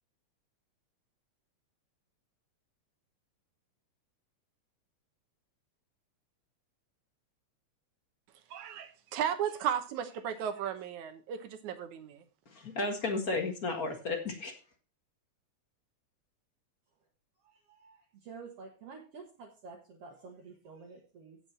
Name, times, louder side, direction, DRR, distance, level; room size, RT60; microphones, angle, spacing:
voice 1, 8.5-12.2, right 9 dB, 80° right, 9 dB, 2.5 m, -35 dB
voice 2, 12.4-14.5, left 3 dB, 35° left, 3 dB, 1.7 m, -33 dB
voice 3, 17.4-21.4, right 4 dB, 60° right, 0 dB, 2.3 m, -50 dB
16.0 x 5.4 x 4.3 m, 0.36 s
omnidirectional pair, 3.3 m